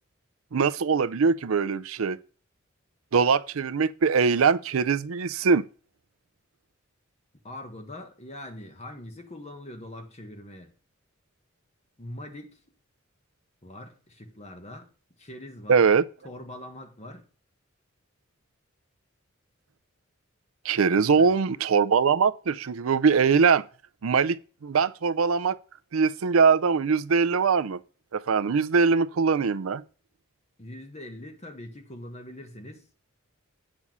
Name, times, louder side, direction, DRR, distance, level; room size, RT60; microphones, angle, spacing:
voice 1, 0.5-2.2 3.1-5.7 15.7-16.0 20.6-23.6 24.0-25.6 25.9-27.8 28.1-29.8, right 5 dB, 80° right, 0.5 m, -22 dB
voice 2, 7.4-10.7 12.0-12.6 13.6-14.9 15.2-15.9 16.2-17.3 21.0-21.3 30.6-32.9, left 1 dB, 30° left, 1.5 m, -42 dB
8.6 x 6.2 x 5.4 m
head